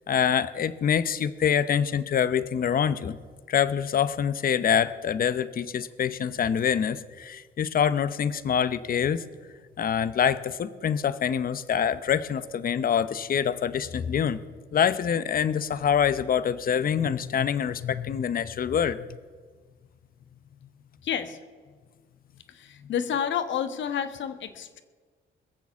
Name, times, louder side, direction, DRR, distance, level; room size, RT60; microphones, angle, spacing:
voice 1, 0.1-3.2 3.5-9.2 9.8-14.4 14.7-19.1, left 8 dB, 45° left, 15 dB, 0.7 m, -25 dB
voice 2, 21.0-21.4 22.5-24.8, left 8 dB, 70° left, 10 dB, 1.3 m, -30 dB
21.5 x 7.2 x 7.0 m, 1.5 s
cardioid pair, 90°, 20 cm